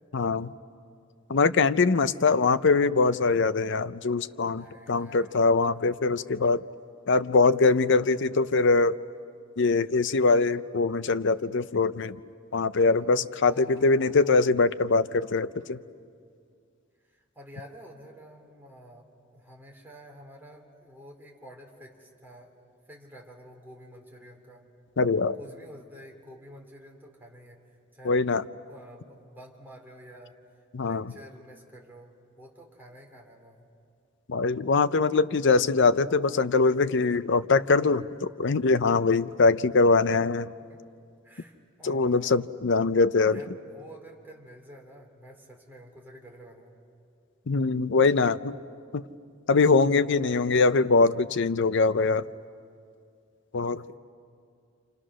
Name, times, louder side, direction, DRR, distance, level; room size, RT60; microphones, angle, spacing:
voice 1, 0.1-0.5 1.3-6.6 7.1-9.0 9.6-12.2 12.5-15.8 25.0-25.4 28.0-28.4 30.7-31.1 34.3-40.5 41.8-43.4 47.5-48.5 48.9-49.0 49.5-52.2 53.5-53.8, left 4 dB, 60° left, 13 dB, 0.6 m, -23 dB
voice 2, 4.5-5.4 12.9-14.5 17.1-22.5 22.9-24.6 25.4-27.6 27.9-33.7 40.6-40.8 41.2-42.5 43.3-46.7 53.6-54.0, equal, 10° right, -1 dB, 3.6 m, -50 dB
28.5 x 28.0 x 6.3 m, 2.3 s
head